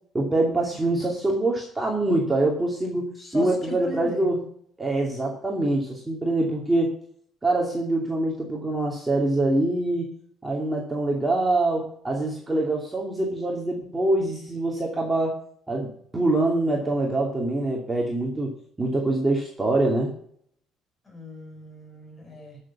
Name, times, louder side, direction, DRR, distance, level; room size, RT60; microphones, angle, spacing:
voice 1, 0.1-4.4 4.8-7.0 7.4-10.1 10.4-15.3 15.7-20.1, right 2 dB, 10° right, -1 dB, 2.5 m, -24 dB
voice 2, 3.2-4.3 21.0-22.6, left 2 dB, 20° left, 2 dB, 6.9 m, -37 dB
13.5 x 6.8 x 7.1 m, 0.63 s
cardioid pair, 130°, 0 cm